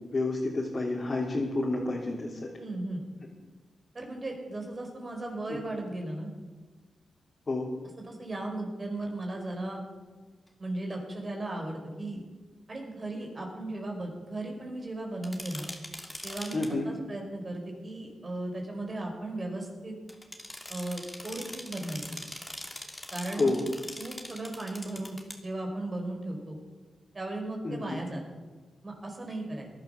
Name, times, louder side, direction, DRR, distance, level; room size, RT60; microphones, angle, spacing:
voice 1, 0.1-2.4 5.5-5.6 7.5-7.7 16.5-16.9 23.3-23.6 27.6-28.0, left 2 dB, 45° left, -4 dB, 3.4 m, -29 dB
voice 2, 2.6-3.0 3.9-6.3 8.1-9.8 10.6-12.2 12.7-15.7 16.2-20.0 20.7-22.2 23.1-23.5 24.0-26.6 27.1-28.2 28.8-29.7, right 2 dB, 40° right, 1 dB, 5.2 m, -36 dB
sound 1, 15.2-16.7 20.1-25.4, left 1 dB, 10° left, 2.7 m, -42 dB
17.5 x 11.5 x 6.8 m, 1.3 s
cardioid pair, 55°, 0 cm